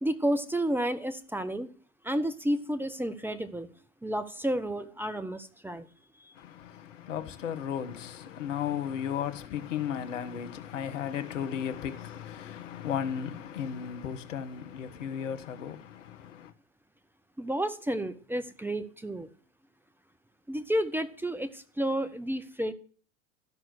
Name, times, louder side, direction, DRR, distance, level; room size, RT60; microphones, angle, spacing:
voice 1, 0.0-1.7 2.0-3.7 4.0-5.9 6.2-6.3 17.4-19.3 20.5-22.7, right 1 dB, 5° right, 0.9 m, -31 dB
voice 2, 6.4-16.5, left 8 dB, 65° left, 1.3 m, -35 dB
13.5 x 6.1 x 8.1 m
figure-of-eight pair, 80°, 41 cm